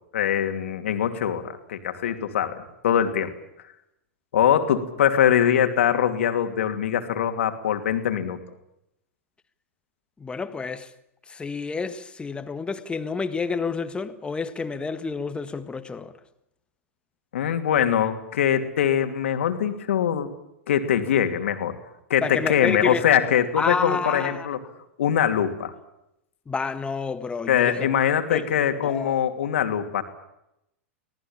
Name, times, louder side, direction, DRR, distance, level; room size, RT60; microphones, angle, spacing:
voice 1, 0.1-3.3 4.3-8.4 17.3-20.3 20.7-21.8 22.1-24.6 25.0-25.7 27.5-30.0, left 9 dB, 70° left, 2.7 m, -23 dB
voice 2, 10.2-10.9 11.3-16.1 22.2-23.0 23.6-24.5 26.5-27.9 28.3-28.4 28.8-29.2, left 4 dB, 15° left, 1.8 m, -29 dB
25.5 x 18.5 x 8.8 m
hypercardioid pair, 100°, 7 cm